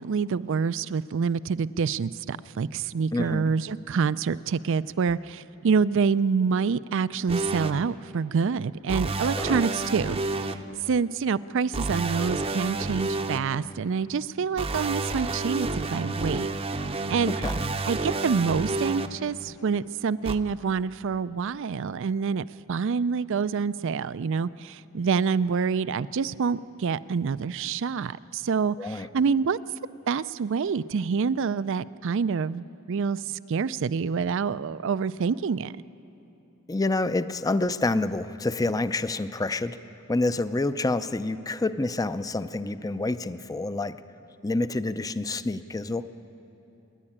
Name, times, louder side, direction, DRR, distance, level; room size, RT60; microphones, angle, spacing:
voice 1, 0.0-10.5 10.9-16.5 17.1-17.6 17.9-29.6 30.1-35.8, right 5 dB, 60° right, 17 dB, 0.4 m, -27 dB
voice 2, 3.1-3.4 9.4-9.6 17.3-17.7 28.8-29.1 36.7-39.8 40.1-44.0 44.4-46.0, left 2 dB, 15° left, 12 dB, 0.5 m, -28 dB
sound 1, 7.3-7.7 8.9-10.5 11.7-13.4 14.6-19.1 20.3-20.4, right 2 dB, 30° right, 0.7 m, -29 dB
26.0 x 11.0 x 10.0 m, 2.9 s
head